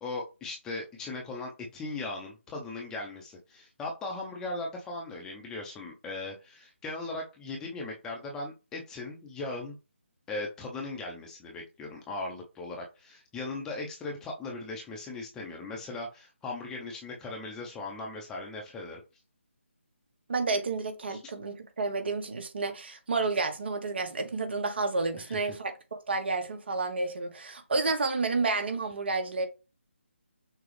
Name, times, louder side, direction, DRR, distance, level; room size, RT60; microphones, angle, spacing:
voice 1, 0.0-9.8 10.3-19.0 21.1-21.2 25.2-25.5, left 2 dB, 10° left, 0.8 m, -38 dB
voice 2, 20.3-29.5, right 3 dB, 55° right, 1.2 m, -30 dB
6.2 x 2.3 x 3.3 m
figure-of-eight pair, 155°, 7 cm